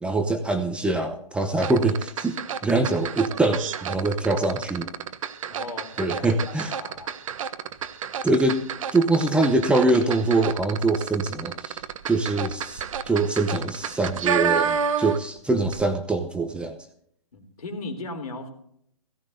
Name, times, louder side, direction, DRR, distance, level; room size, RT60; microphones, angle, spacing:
voice 1, 0.0-4.9 6.0-6.7 8.2-8.6 8.9-16.8, right 2 dB, 5° right, 6 dB, 0.8 m, -24 dB
sound 1, 1.6-15.4 15.6-15.8, right 7 dB, 60° right, 1.0 m, -30 dB
voice 2, 5.5-7.2 17.3-18.5, left 2 dB, 75° left, 5 dB, 3.4 m, -37 dB
17.0 x 16.5 x 2.7 m, 0.70 s
hypercardioid pair, 130°, 19 cm